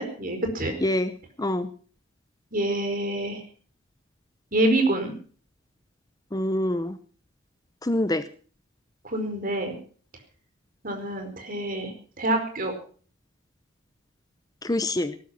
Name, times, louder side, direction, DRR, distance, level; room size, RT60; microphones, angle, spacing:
voice 1, 0.0-0.7 2.5-3.4 4.5-5.1 9.0-9.7 10.8-12.7, right 1 dB, 40° right, 5 dB, 4.8 m, -26 dB
voice 2, 0.8-1.7 6.3-7.0 7.8-8.3 14.6-15.1, left 1 dB, 15° left, 12 dB, 0.7 m, -26 dB
18.5 x 12.5 x 5.8 m, 0.43 s
head